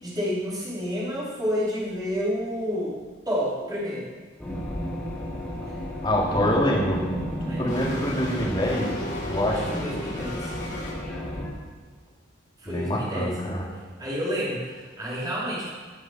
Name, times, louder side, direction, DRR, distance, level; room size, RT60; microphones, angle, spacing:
voice 1, 0.0-2.9 3.3-4.1 5.7-5.8 6.3-6.5 7.4-7.7 9.4-10.6 12.6-13.3 14.0-15.7, equal, 20° right, -8 dB, 4.7 m, -30 dB
sound 1, 4.4-11.5, equal, 5° left, 3.7 m, -32 dB
voice 2, 6.0-7.0 7.4-10.1 12.6-13.6, equal, 25° left, -4 dB, 3.0 m, -26 dB
sound 2, 7.7-10.9, left 1 dB, 60° left, 4.1 m, -36 dB
17.5 x 8.0 x 6.0 m, 1.5 s
head